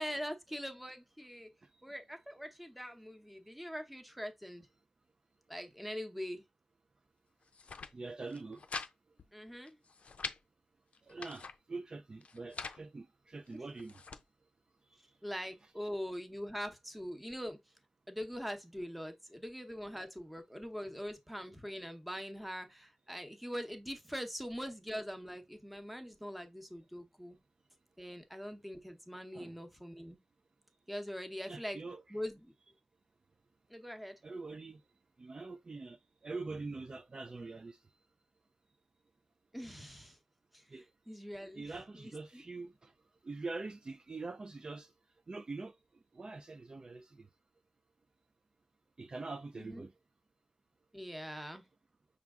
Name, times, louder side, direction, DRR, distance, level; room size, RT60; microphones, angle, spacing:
voice 1, 0.0-1.5 1.8-4.7 5.5-6.4 9.3-9.8 13.5-13.6 15.2-17.6 18.1-27.4 28.0-30.2 30.9-31.8 32.1-32.5 33.7-34.2 39.5-40.2 40.5-40.6 41.1-42.4 49.6-49.9 50.9-51.7, equal, 5° right, 0.8 m, -43 dB
sound 1, 7.4-7.9 8.3-8.9 9.2-9.3 9.7-10.4 10.9-11.6 12.2-12.8 13.5-14.2, left 5 dB, 70° left, 0.5 m, -44 dB
voice 2, 7.9-8.6 11.0-14.0 14.9-15.0 15.6-15.7 29.3-29.6 31.5-32.0 34.2-34.8 35.2-37.8 40.7-40.8 41.4-42.9 43.2-44.9 45.3-45.8 46.1-47.3 49.0-49.9, right 3 dB, 40° right, 0.3 m, -44 dB
5.8 x 2.3 x 3.6 m
wide cardioid pair, 120°, 2 cm